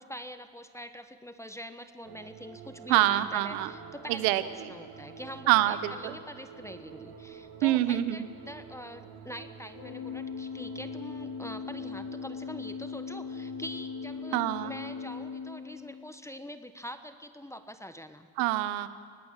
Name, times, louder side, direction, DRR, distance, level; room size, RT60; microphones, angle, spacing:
voice 1, 0.0-18.3, equal, 5° left, 9 dB, 1.2 m, -44 dB
sound 1, 2.0-15.2, right 6 dB, 65° right, 2.4 m, -48 dB
voice 2, 2.9-3.7 4.1-4.7 5.5-6.2 7.6-8.3 14.3-14.7 18.4-18.9, right 15 dB, 80° right, 13 dB, 1.3 m, -26 dB
Organ, 9.7-16.3, left 6 dB, 70° left, 2.0 m, -39 dB
23.0 x 18.0 x 7.5 m, 2.1 s
supercardioid pair, 75°, 41 cm